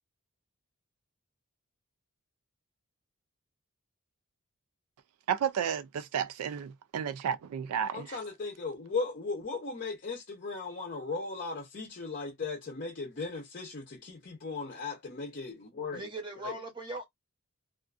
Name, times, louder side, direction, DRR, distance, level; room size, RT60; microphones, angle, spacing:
voice 1, 5.3-8.2, right 8 dB, 80° right, 0.3 m, -32 dB
voice 2, 7.9-16.0 16.4-16.5, left 4 dB, 40° left, 0.6 m, -37 dB
voice 3, 15.9-17.0, right 2 dB, 20° right, 0.8 m, -39 dB
2.4 x 2.3 x 2.4 m
head